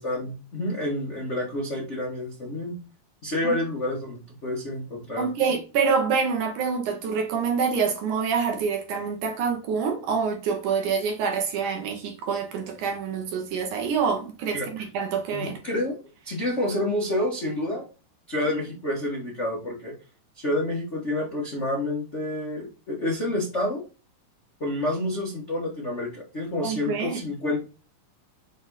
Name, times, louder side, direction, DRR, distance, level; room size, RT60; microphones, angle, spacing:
voice 1, 0.0-2.7 3.2-5.3 14.5-14.7 15.3-16.0 16.2-17.8 18.3-19.9 20.4-23.8 24.6-27.6, left 1 dB, 70° left, 0.6 m, -28 dB
voice 2, 5.2-15.6 26.6-27.2, right 5 dB, 65° right, 2.2 m, -26 dB
6.2 x 3.5 x 5.5 m
omnidirectional pair, 4.3 m